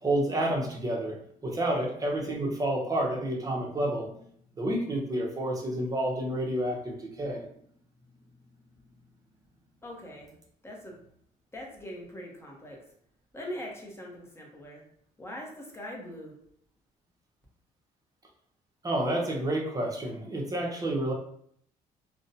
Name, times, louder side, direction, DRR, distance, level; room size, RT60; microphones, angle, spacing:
voice 1, 0.0-1.2 1.4-4.1 4.6-7.4 18.8-21.1, right 1 dB, 25° right, -1 dB, 0.7 m, -29 dB
voice 2, 9.8-10.3 10.6-11.0 11.5-12.8 13.3-14.8 15.2-16.4, equal, 15° left, -2 dB, 0.8 m, -41 dB
2.5 x 2.1 x 2.7 m, 0.66 s
supercardioid pair, 80°, 15 cm